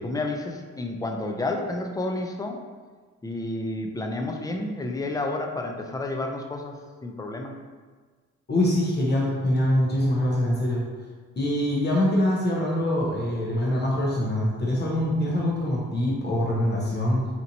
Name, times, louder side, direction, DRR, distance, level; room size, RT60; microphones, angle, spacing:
voice 1, 0.0-2.6 3.2-7.5, left 2 dB, 10° left, 2 dB, 0.4 m, -30 dB
voice 2, 8.5-10.8 11.4-17.3, left 1 dB, 35° left, -4 dB, 0.8 m, -24 dB
4.1 x 2.9 x 2.6 m, 1.5 s
cardioid pair, 90°, 30 cm